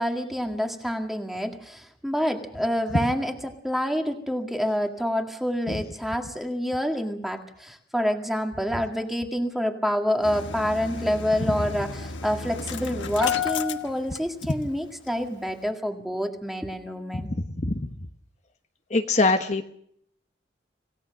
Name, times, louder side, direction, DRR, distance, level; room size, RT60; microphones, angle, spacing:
voice 1, 0.0-17.3, equal, ahead, 4 dB, 2.0 m, -27 dB
Engine starting, 10.2-14.8 15.1-15.2 15.5-15.6, left 7 dB, 75° left, 1.4 m, -32 dB
voice 2, 17.3-17.7 18.9-19.7, left 3 dB, 35° left, 5 dB, 1.1 m, -23 dB
26.5 x 17.0 x 6.5 m, 0.68 s
head